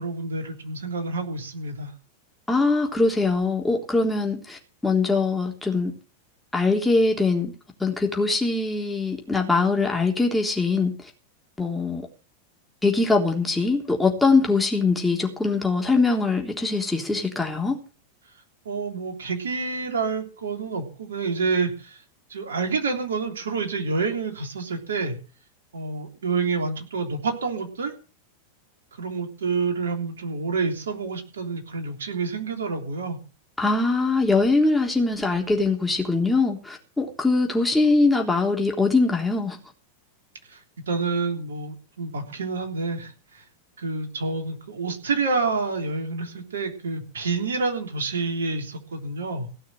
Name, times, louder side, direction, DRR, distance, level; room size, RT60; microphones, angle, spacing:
voice 1, 0.0-1.9 18.6-22.0 22.3-25.2 25.7-27.9 29.0-33.2 40.5-40.6 40.9-43.4 43.8-49.5, right 4 dB, 65° right, 3.4 m, -28 dB
voice 2, 2.5-5.9 6.5-7.5 7.8-10.9 11.6-12.0 12.8-17.8 33.6-39.6, left 3 dB, 5° left, 3.5 m, -22 dB
17.0 x 6.5 x 7.8 m
figure-of-eight pair, 90°, 0 cm